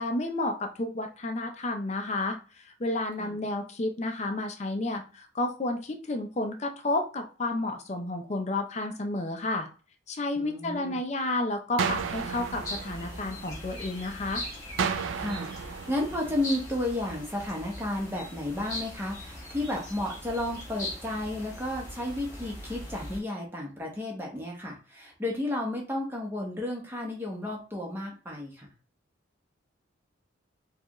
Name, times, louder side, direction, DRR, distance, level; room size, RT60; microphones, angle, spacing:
voice 1, 0.0-9.7 10.1-14.4, left 2 dB, 35° left, 4 dB, 0.5 m, -31 dB
voice 2, 10.4-11.0 15.2-28.7, left 1 dB, 10° right, -1 dB, 0.9 m, -33 dB
sound 1, 11.8-23.2, left 1 dB, 15° left, 1.5 m, -41 dB
sound 2, 11.8-13.8 14.8-16.8, right 6 dB, 80° right, 0.3 m, -33 dB
4.5 x 2.4 x 3.0 m, 0.36 s
head